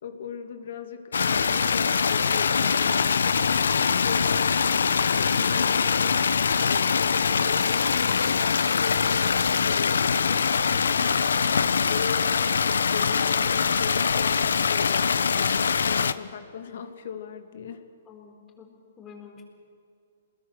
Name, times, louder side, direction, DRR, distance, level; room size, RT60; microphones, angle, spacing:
voice 1, 0.0-6.2 6.4-17.8, left 7 dB, 65° left, 7 dB, 2.4 m, -39 dB
sound 1, 1.1-16.1, left 6 dB, 85° left, 0.8 m, -23 dB
voice 2, 18.1-18.7 19.0-19.4, left 7 dB, 20° left, 3 dB, 4.3 m, -47 dB
27.0 x 20.5 x 6.6 m, 2.3 s
hypercardioid pair, 145°, 0 cm